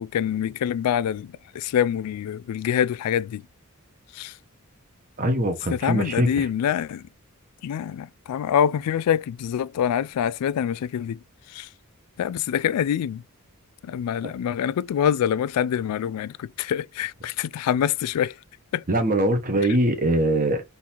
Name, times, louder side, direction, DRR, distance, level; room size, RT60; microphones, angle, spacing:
voice 1, 0.0-3.4 4.2-4.3 5.7-7.0 7.6-11.2 11.5-11.7 12.2-13.2 13.8-18.3 18.7-18.8, left 9 dB, 90° left, 0.3 m, -25 dB
voice 2, 5.2-6.5 14.2-14.3 18.9-20.6, right 1 dB, 40° right, 0.9 m, -22 dB
3.8 x 2.7 x 4.4 m
head